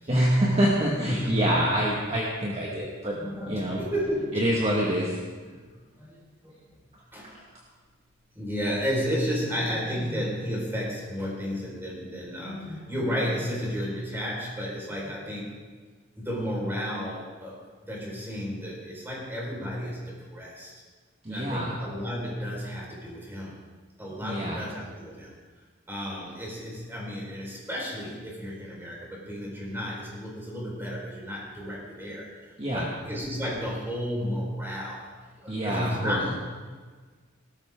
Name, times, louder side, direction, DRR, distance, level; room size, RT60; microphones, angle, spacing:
voice 1, 0.1-3.2 3.5-3.8 4.3-5.2 21.2-21.8 24.2-24.6 32.6-32.9 35.5-36.2, right 1 dB, 30° right, -4 dB, 1.7 m, -26 dB
voice 2, 1.0-1.7 3.2-4.5 5.5-5.6 6.0-6.6 7.1-7.3 8.3-15.5 16.2-17.6 17.9-20.7 21.3-23.6 24.0-25.3 25.9-35.1 35.4-36.3, equal, 10° right, -4 dB, 4.6 m, -32 dB
18.0 x 13.0 x 3.7 m, 1.5 s
head